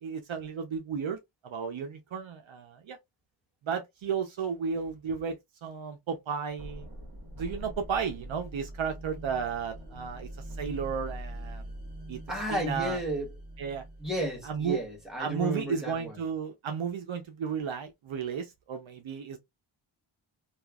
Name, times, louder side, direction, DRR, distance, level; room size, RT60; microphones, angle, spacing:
voice 1, 0.0-3.0 3.6-6.9 7.4-10.3 10.6-11.7 12.1-12.2 12.5-13.0 13.6-13.8 14.4-14.8 15.2-19.4, right 6 dB, 75° right, 0.8 m, -33 dB
sound 1, 6.6-15.4, right 1 dB, 55° right, 1.3 m, -43 dB
voice 2, 12.3-13.4 14.0-16.2, equal, ahead, 1.7 m, -33 dB
2.9 x 2.4 x 2.3 m
wide cardioid pair, 90°, 47 cm